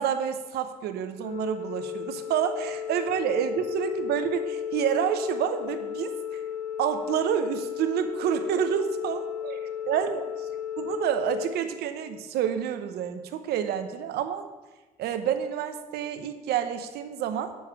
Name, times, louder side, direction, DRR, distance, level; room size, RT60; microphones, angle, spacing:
voice 1, 0.0-6.4 6.8-10.2 10.8-14.5 15.0-17.5, right 9 dB, 85° right, 9 dB, 0.8 m, -28 dB
Organ, 1.2-12.3, left 9 dB, 45° left, 2.4 m, -34 dB
7.2 x 6.2 x 7.1 m, 1.2 s
supercardioid pair, 70°, 16 cm